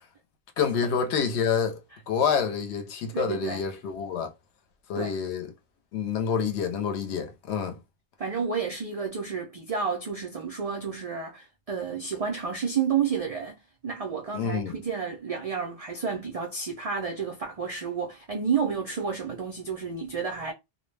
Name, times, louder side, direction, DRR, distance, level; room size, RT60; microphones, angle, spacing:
voice 1, 0.6-1.8 2.1-4.3 4.9-5.5 5.9-7.8 14.3-14.7, left 6 dB, 75° left, 0.8 m, -27 dB
voice 2, 3.1-3.6 5.0-5.1 8.2-13.6 13.8-20.5, right 6 dB, 70° right, 0.3 m, -30 dB
2.2 x 2.0 x 3.1 m
omnidirectional pair, 1.2 m